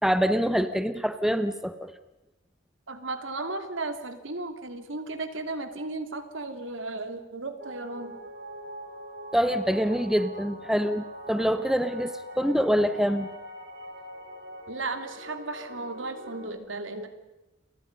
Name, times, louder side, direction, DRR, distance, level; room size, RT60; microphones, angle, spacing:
voice 1, 0.0-1.9 9.3-13.3, equal, ahead, 10 dB, 1.0 m, -25 dB
voice 2, 2.9-8.1 14.7-17.1, right 2 dB, 85° right, 7 dB, 2.8 m, -35 dB
sound 1, 7.6-16.5, equal, 55° right, 3.5 m, -42 dB
30.0 x 24.0 x 5.4 m, 1.0 s
head